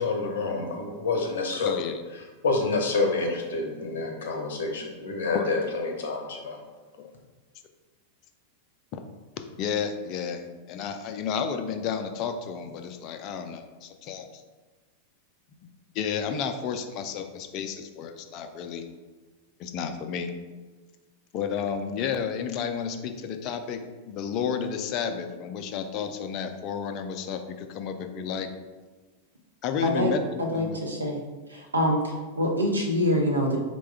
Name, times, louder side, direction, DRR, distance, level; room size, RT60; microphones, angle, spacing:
voice 1, 0.0-1.8 2.4-6.6, left 3 dB, 60° left, 2 dB, 0.7 m, -28 dB
voice 2, 1.6-2.0 5.3-5.5 7.0-7.1 8.9-9.0 9.6-14.4 15.9-18.9 19.6-20.3 21.3-28.5 29.6-30.8, left 7 dB, 40° left, 7 dB, 0.4 m, -32 dB
voice 3, 29.8-30.1 30.4-31.2 31.5-33.6, equal, 80° right, 1 dB, 0.7 m, -25 dB
4.1 x 2.2 x 4.6 m, 1.3 s
figure-of-eight pair, 90°, 0 cm